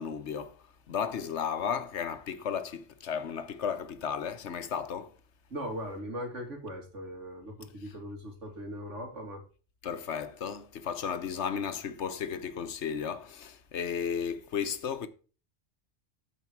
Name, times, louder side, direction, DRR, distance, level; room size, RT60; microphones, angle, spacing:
voice 1, 0.0-5.1 7.8-7.9 9.8-15.1, left 7 dB, 70° left, 1.2 m, -34 dB
voice 2, 5.5-9.4, equal, 85° right, 3.0 m, -39 dB
14.0 x 5.1 x 4.6 m
omnidirectional pair, 1.2 m